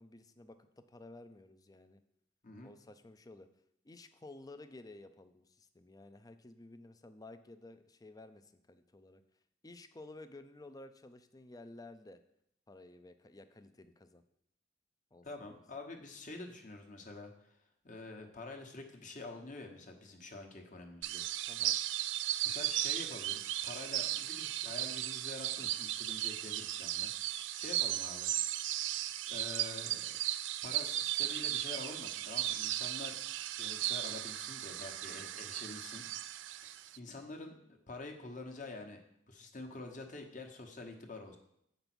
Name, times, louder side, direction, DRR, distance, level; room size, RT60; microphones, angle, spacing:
voice 1, 0.0-2.0 2.6-3.5 3.8-9.2 9.6-12.2 12.7-14.2 15.1-15.6 21.5-21.8, left 2 dB, 20° left, 10 dB, 0.5 m, -53 dB
voice 2, 15.2-17.6 17.8-21.3 22.4-27.1 27.5-28.3 29.3-30.1 30.6-33.3 33.6-36.1 36.6-39.0 39.3-41.4, left 2 dB, 45° left, 4 dB, 1.2 m, -47 dB
sound 1, 21.0-37.0, right 14 dB, 80° right, 0.3 m, -36 dB
8.0 x 5.3 x 6.1 m, 0.74 s
head